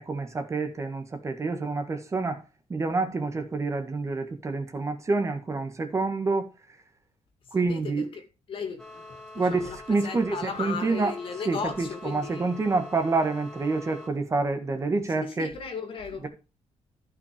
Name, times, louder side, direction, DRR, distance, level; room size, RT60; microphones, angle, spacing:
voice 1, 0.0-2.4 2.7-6.5 7.5-8.1 9.3-11.1 11.4-15.5 16.2-16.3, right 3 dB, 25° right, 1.6 m, -27 dB
voice 2, 7.7-8.2 8.5-9.1 9.5-9.8 10.0-12.5 15.2-16.3, left 6 dB, 45° left, 2.6 m, -36 dB
Whelen Horn, 8.8-14.1, left 2 dB, 5° left, 3.6 m, -45 dB
14.0 x 5.9 x 5.0 m
cardioid pair, 165°, 12 cm